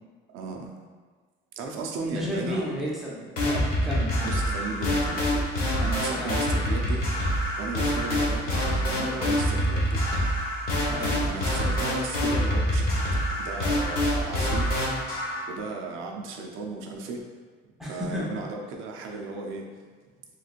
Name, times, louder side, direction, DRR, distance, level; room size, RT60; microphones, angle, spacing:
voice 1, 0.3-0.7 1.6-2.7 4.2-7.1 7.5-10.0 11.0-12.9 13.4-14.7 15.4-17.3 17.9-19.7, right 4 dB, 85° right, 2 dB, 0.5 m, -35 dB
voice 2, 2.0-4.3 6.1-6.4 10.9-11.1 17.8-18.4, equal, ahead, -6 dB, 0.6 m, -32 dB
sound 1, 3.4-15.4, equal, 50° left, 0.9 m, -26 dB
3.2 x 3.0 x 2.4 m, 1.5 s
cardioid pair, 165°, 20 cm